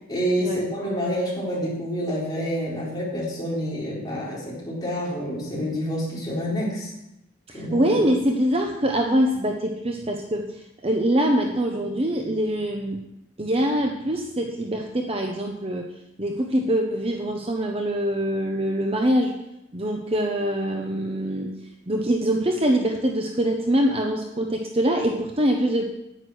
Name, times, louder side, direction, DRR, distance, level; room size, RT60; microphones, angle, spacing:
voice 1, 0.1-6.9 7.5-7.8, equal, 20° left, -6 dB, 4.2 m, -28 dB
voice 2, 7.5-10.5 10.8-13.0 13.4-15.9 16.2-19.3 19.7-21.5 21.9-25.9, equal, 30° right, 2 dB, 1.0 m, -24 dB
10.0 x 9.7 x 6.3 m, 0.87 s
head